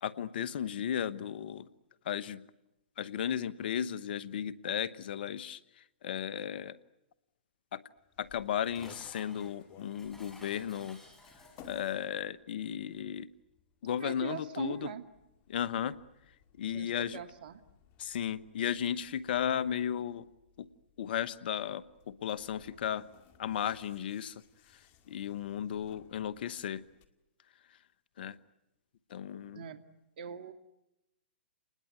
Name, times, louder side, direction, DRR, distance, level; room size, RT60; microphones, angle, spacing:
voice 1, 0.0-1.7 2.0-2.4 3.0-6.8 7.7-7.8 8.2-11.0 11.6-13.3 13.8-14.9 15.5-16.0 16.6-17.2 18.0-20.3 20.6-20.7 21.0-23.0 23.4-24.4 25.1-26.8 28.2-28.4 29.1-29.6, left 9 dB, 60° left, 16 dB, 1.1 m, -35 dB
sound 1, 8.0-27.1, left 7 dB, 35° left, 2.1 m, -61 dB
Dishes pots and pans, 8.3-12.1, left 1 dB, 5° left, 5.9 m, -56 dB
voice 2, 14.0-15.0 16.7-17.6 29.5-29.8 30.2-30.5, right 8 dB, 55° right, 9 dB, 1.9 m, -41 dB
29.0 x 20.5 x 9.6 m, 0.94 s
hypercardioid pair, 130°, 6 cm